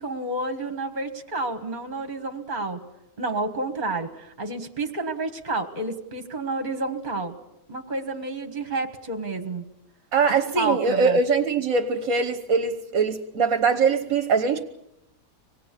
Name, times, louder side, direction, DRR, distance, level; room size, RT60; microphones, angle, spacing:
voice 1, 0.0-2.8 3.2-7.4 7.7-9.6 10.5-11.2, right 2 dB, 30° right, 1.6 m, -30 dB
voice 2, 10.1-14.6, right 5 dB, 55° right, 1.5 m, -22 dB
25.5 x 19.5 x 8.4 m
omnidirectional pair, 1.8 m